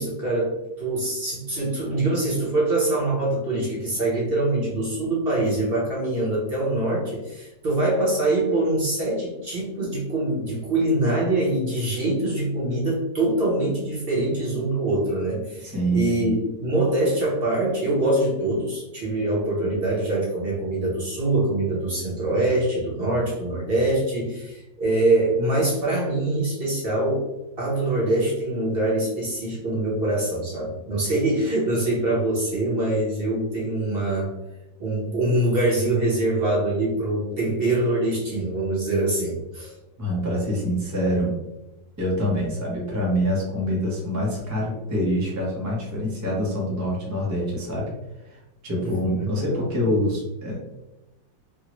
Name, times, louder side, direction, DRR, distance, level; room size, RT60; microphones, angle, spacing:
voice 1, 0.0-27.2 27.6-34.3 34.8-39.7 48.8-49.4, right 2 dB, 45° right, -5 dB, 0.9 m, -24 dB
voice 2, 15.6-16.3 19.6-19.7 40.0-41.3 42.0-47.9 48.3-50.6, equal, 25° right, -5 dB, 0.4 m, -25 dB
3.6 x 2.1 x 3.0 m, 0.97 s
omnidirectional pair, 1.9 m